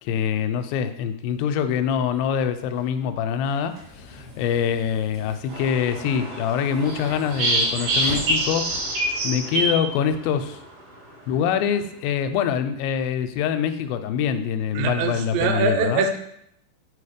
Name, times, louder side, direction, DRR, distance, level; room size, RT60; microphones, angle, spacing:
voice 1, 0.0-10.6 11.3-16.1, left 8 dB, 90° left, 10 dB, 2.3 m, -25 dB
sound 1, 2.6-9.2, left 1 dB, 10° right, 1.2 m, -44 dB
sound 2, 5.5-10.5, right 2 dB, 65° right, 3.2 m, -26 dB
voice 2, 14.8-16.2, right 4 dB, 85° right, 7 dB, 2.3 m, -23 dB
5.2 x 4.4 x 5.0 m, 0.74 s
omnidirectional pair, 4.1 m